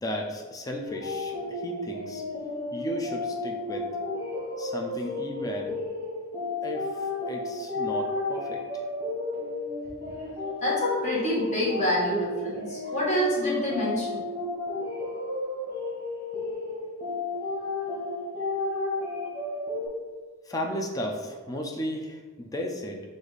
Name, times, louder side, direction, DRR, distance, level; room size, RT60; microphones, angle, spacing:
voice 1, 0.0-2.2 2.7-3.9 4.6-5.8 6.6-8.8 20.5-23.0, equal, 15° left, 1 dB, 0.4 m, -34 dB
sound 1, 0.8-19.9, left 2 dB, 15° right, 1.3 m, -33 dB
voice 2, 10.4-14.2, equal, 35° left, -6 dB, 1.3 m, -27 dB
4.8 x 2.6 x 4.0 m, 1.4 s
head